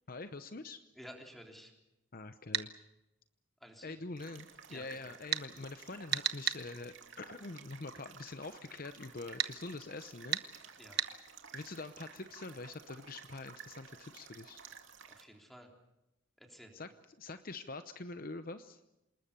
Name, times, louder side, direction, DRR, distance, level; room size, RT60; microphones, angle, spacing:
voice 1, 0.1-0.8 2.1-2.7 3.8-10.4 11.5-14.6 16.7-16.9 17.2-18.8, left 3 dB, 45° left, 10 dB, 0.8 m, -45 dB
voice 2, 1.0-1.7 3.6-3.9 4.7-4.8 10.8-11.0 15.2-15.7 16.4-16.7, equal, ahead, 2 dB, 3.6 m, -52 dB
sound 1, 2.5-2.7 5.3-5.5 6.1-6.6 9.4-9.5 10.3-10.5 11.0-11.1, right 10 dB, 55° right, 1.2 m, -32 dB
sound 2, 4.2-15.2, right 6 dB, 75° right, 2.5 m, -54 dB
27.5 x 20.0 x 6.9 m, 0.92 s
head